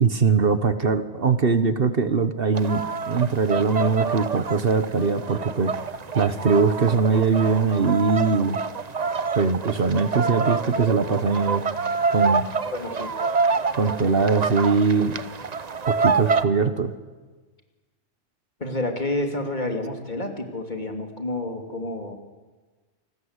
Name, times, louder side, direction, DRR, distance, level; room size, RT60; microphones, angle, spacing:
voice 1, 0.0-5.7 6.1-8.6 9.3-11.6 12.1-12.4 13.7-15.2 15.9-16.9, right 5 dB, 55° right, 11 dB, 1.3 m, -21 dB
sound 1, 2.5-16.4, right 5 dB, 40° right, 0.9 m, -27 dB
voice 2, 12.7-13.1 18.6-22.2, left 2 dB, 40° left, 3 dB, 2.9 m, -29 dB
28.5 x 20.0 x 8.2 m, 1.3 s
omnidirectional pair, 1.2 m